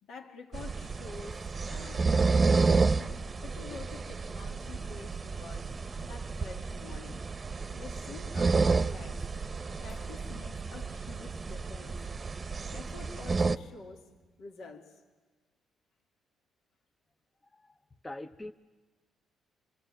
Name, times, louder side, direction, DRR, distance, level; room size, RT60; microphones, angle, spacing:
voice 1, 0.0-3.2 3.4-5.8 6.0-7.2 7.7-9.3 9.8-12.0 12.7-14.1 14.4-15.0, left 4 dB, 75° left, 2.0 m, -48 dB
sound 1, 0.5-13.6, right 4 dB, 30° right, 0.9 m, -30 dB
voice 2, 17.4-17.7 18.0-18.5, left 1 dB, 15° left, 0.7 m, -43 dB
26.0 x 23.5 x 8.8 m
cardioid pair, 90°, 0 cm